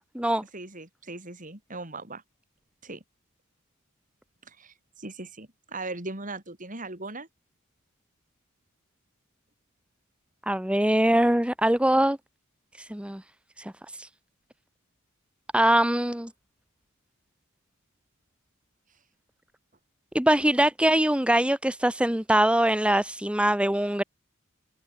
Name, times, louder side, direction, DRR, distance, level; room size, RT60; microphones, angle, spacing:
voice 1, 0.0-0.4 10.5-12.2 12.8-13.2 13.6-13.7 14.0-14.1 15.5-16.3 20.1-24.0, right 1 dB, 5° right, 1.2 m, -23 dB
voice 2, 0.5-2.2 2.8-3.0 4.5-7.3, right 2 dB, 35° right, 4.9 m, -39 dB
head